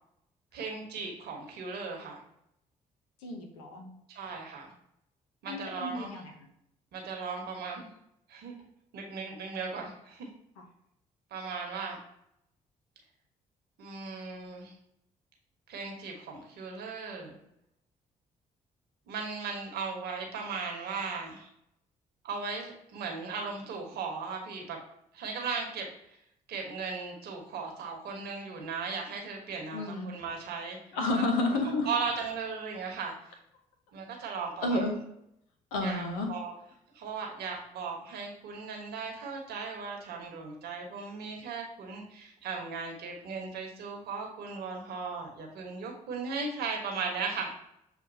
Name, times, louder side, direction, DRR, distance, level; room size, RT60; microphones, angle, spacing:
voice 1, 0.5-2.2 4.1-4.7 5.4-6.2 6.9-7.9 8.3-8.5 8.9-10.3 11.3-12.0 13.8-14.7 15.7-17.4 19.1-21.5 22.2-24.8 25.1-26.2 26.5-30.8 31.1-31.2 31.9-33.4 33.9-34.9 35.8-36.0 36.3-36.5 36.9-47.5, right 5 dB, 70° right, 1 dB, 1.2 m, -37 dB
voice 2, 3.2-4.0 5.5-6.5 29.7-30.1 30.9-31.9 34.6-35.0 35.7-36.3, left 2 dB, 90° left, 3 dB, 0.8 m, -31 dB
7.0 x 2.4 x 2.6 m, 0.77 s
hypercardioid pair, 50°, 17 cm